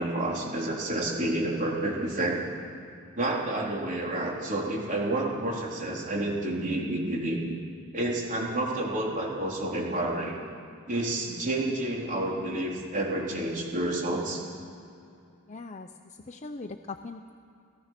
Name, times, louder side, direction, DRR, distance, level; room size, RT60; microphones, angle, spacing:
voice 1, 0.0-2.4 3.2-7.6 7.9-10.4 10.9-14.4, right 1 dB, 35° right, -2 dB, 4.0 m, -29 dB
voice 2, 15.5-17.3, left 3 dB, 30° left, 5 dB, 0.7 m, -41 dB
30.0 x 16.5 x 6.0 m, 2.5 s
head